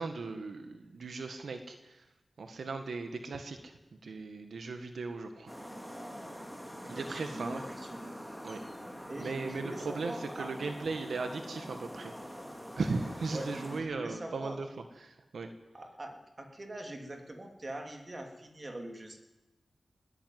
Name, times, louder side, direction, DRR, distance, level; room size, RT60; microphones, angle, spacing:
voice 1, 0.0-2.1 2.4-3.7 4.0-5.7 6.9-7.6 8.4-8.6 9.2-12.1 12.8-14.7 15.0-15.5, right 4 dB, 80° right, 7 dB, 1.8 m, -37 dB
sound 1, 5.5-13.8, equal, 5° right, 2.8 m, -45 dB
voice 2, 6.8-8.2 9.1-10.5 13.3-14.6 15.7-19.2, right 1 dB, 30° right, 3 dB, 3.3 m, -43 dB
21.0 x 14.5 x 9.6 m, 1.0 s
wide cardioid pair, 115°, 0 cm